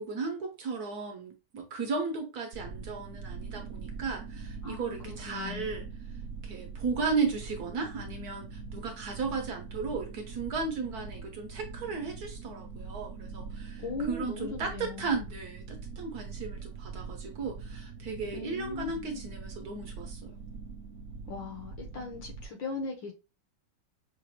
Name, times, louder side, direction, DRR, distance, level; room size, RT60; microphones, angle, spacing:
voice 1, 0.0-5.8 6.4-20.3, right 4 dB, 60° right, 1.1 m, -35 dB
sound 1, 2.5-22.5, right 4 dB, 75° right, 0.7 m, -43 dB
voice 2, 4.6-5.9 13.8-15.2 18.3-19.2 21.3-23.1, left 3 dB, 70° left, 1.7 m, -39 dB
5.9 x 2.4 x 2.8 m
omnidirectional pair, 2.2 m